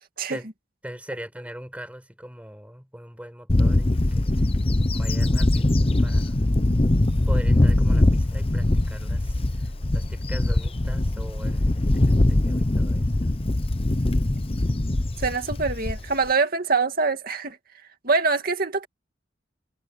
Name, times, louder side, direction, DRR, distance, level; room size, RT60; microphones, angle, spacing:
voice 1, 0.8-4.4 4.9-6.4 7.2-13.1, equal, 5° right, 6.6 m, -41 dB
Bird / Wind, 3.5-16.3, left 1 dB, 30° left, 0.8 m, -22 dB
voice 2, 15.2-17.6 18.0-18.9, right 4 dB, 50° right, 2.4 m, -24 dB
head